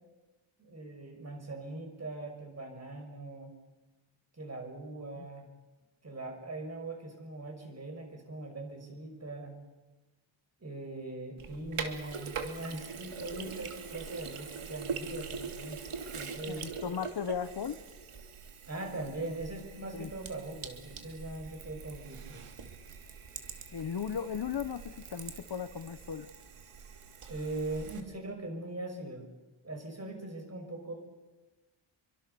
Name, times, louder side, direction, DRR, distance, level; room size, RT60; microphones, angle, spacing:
voice 1, 0.6-3.5 4.3-5.5 6.0-9.6 10.6-15.8 16.1-16.7 18.7-22.5 27.3-29.3 29.6-30.9, right 2 dB, 30° right, 3 dB, 6.3 m, -41 dB
Sink (filling or washing), 11.4-28.0, right 5 dB, 90° right, 2.8 m, -43 dB
voice 2, 16.5-17.8 19.9-20.1 23.7-26.3, left 7 dB, 55° left, 12 dB, 1.1 m, -36 dB
28.0 x 24.0 x 7.0 m, 1.1 s
wide cardioid pair, 165°, 49 cm